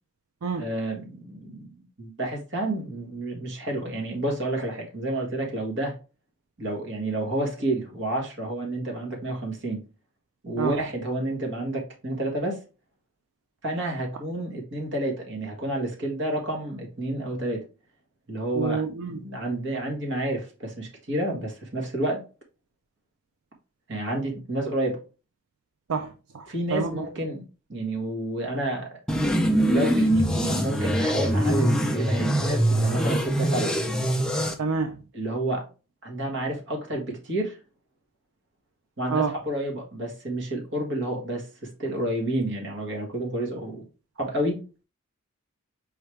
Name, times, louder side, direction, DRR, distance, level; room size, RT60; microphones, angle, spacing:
voice 1, 0.6-6.0 6.6-9.8 10.4-12.6 13.6-17.6 18.3-22.2 23.9-25.0 26.5-27.4 27.7-29.0 29.7-33.7 35.1-35.7 36.0-37.6 39.0-43.8 44.2-44.6, right 1 dB, 55° right, 1.5 m, -30 dB
voice 2, 18.5-19.2 25.9-27.1 34.6-35.0 39.1-39.4, right 4 dB, 80° right, 0.5 m, -28 dB
sound 1, 29.1-34.5, right 1 dB, 5° left, 0.4 m, -23 dB
4.5 x 3.5 x 3.2 m
head